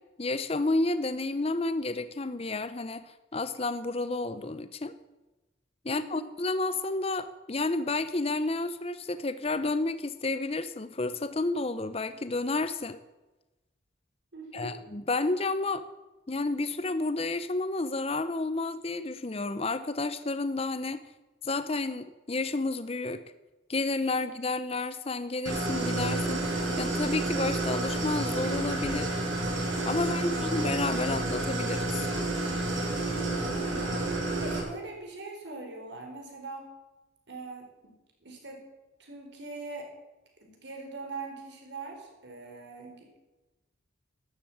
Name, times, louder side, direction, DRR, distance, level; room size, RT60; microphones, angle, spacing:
voice 1, 0.2-3.0 3.3-4.9 5.8-13.0 14.5-15.8 16.3-21.0 21.4-23.2 23.7-29.1 29.9-32.1, left 2 dB, 30° left, 12 dB, 0.6 m, -31 dB
voice 2, 5.9-6.3 14.3-14.8 24.2-24.3 33.3-36.7 37.3-37.9 38.2-38.6 39.0-39.9 40.4-43.2, right 3 dB, 60° right, 1 dB, 4.5 m, -42 dB
Idling, 25.5-34.6, right 2 dB, 80° right, 5.7 m, -30 dB
13.0 x 11.5 x 8.6 m, 1.1 s
head